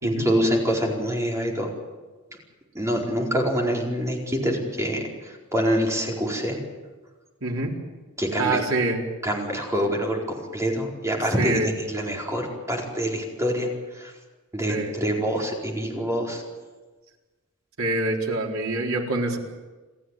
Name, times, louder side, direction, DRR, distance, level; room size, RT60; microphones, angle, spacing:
voice 1, 0.0-1.7 2.7-5.0 5.5-6.6 8.2-8.6 9.2-13.7 14.0-14.1 14.5-16.4, equal, 15° right, -1 dB, 4.7 m, -25 dB
voice 2, 7.4-7.7 8.4-9.0 11.4-11.7 14.7-15.0 17.8-19.4, right 2 dB, 90° right, 0 dB, 4.4 m, -25 dB
29.0 x 14.0 x 9.2 m, 1.2 s
head